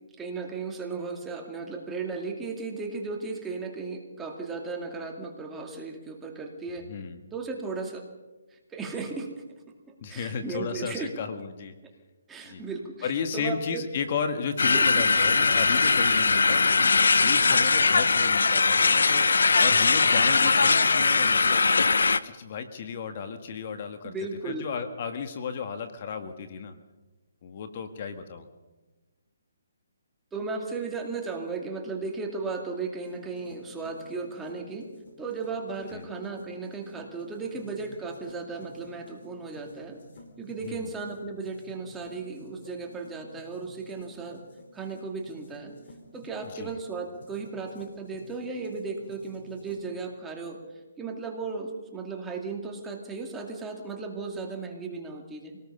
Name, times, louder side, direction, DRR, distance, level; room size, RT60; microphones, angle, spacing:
voice 1, 0.2-6.9 7.3-8.1 8.5-9.4 9.9-11.1 12.3-13.8 14.7-14.8 24.0-24.7 30.3-34.9 35.2-40.0 40.4-44.4 44.7-45.7 46.1-50.6 51.0-55.6, right 4 dB, 10° right, 1 dB, 2.3 m, -35 dB
voice 2, 6.9-7.2 10.0-11.7 12.5-12.6 13.0-19.3 19.6-21.7 22.1-24.1 24.4-26.7 27.4-28.4 35.9-36.1 40.6-40.8 46.5-46.7, left 6 dB, 40° left, 8 dB, 1.6 m, -34 dB
sound 1, 14.6-22.2, left 4 dB, 80° left, 0.9 m, -21 dB
sound 2, 33.0-49.8, left 1 dB, 55° left, 5.0 m, -52 dB
25.0 x 18.5 x 5.5 m, 1.1 s
hypercardioid pair, 160°, 0 cm